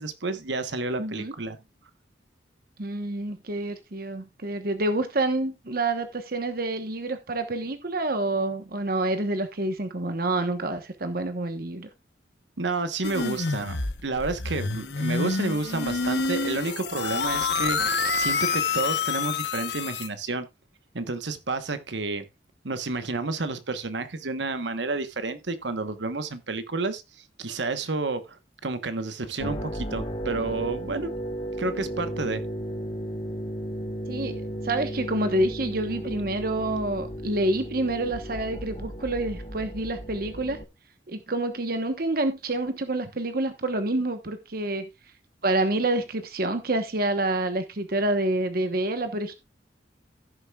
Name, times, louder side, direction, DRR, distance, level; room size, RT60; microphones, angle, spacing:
voice 1, 0.0-1.6 12.6-20.5 20.9-22.2 22.6-31.1 31.6-32.4, right 3 dB, 80° right, 1.2 m, -30 dB
voice 2, 1.0-1.3 2.8-11.9 34.1-40.6 41.1-44.9 45.4-49.3, right 2 dB, 55° right, 1.2 m, -28 dB
sound 1, 13.0-20.1, left 4 dB, 70° left, 1.0 m, -27 dB
sound 2, 29.4-40.6, equal, 30° left, 1.6 m, -34 dB
16.0 x 6.8 x 2.4 m
head